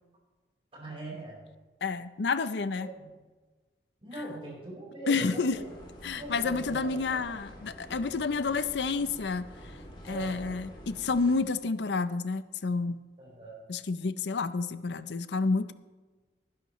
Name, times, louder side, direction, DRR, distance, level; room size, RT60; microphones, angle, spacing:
voice 1, 0.7-1.4 2.8-3.1 4.0-5.7 6.2-7.2 10.1-10.5 13.2-13.6, right 2 dB, 35° right, -4 dB, 4.6 m, -41 dB
voice 2, 1.8-2.9 5.1-5.6 6.0-9.7 10.0-13.0 13.7-15.7, left 4 dB, 75° left, 13 dB, 0.6 m, -30 dB
sound 1, 5.5-11.4, equal, 30° left, 2.4 m, -48 dB
19.5 x 10.5 x 3.1 m, 1.3 s
head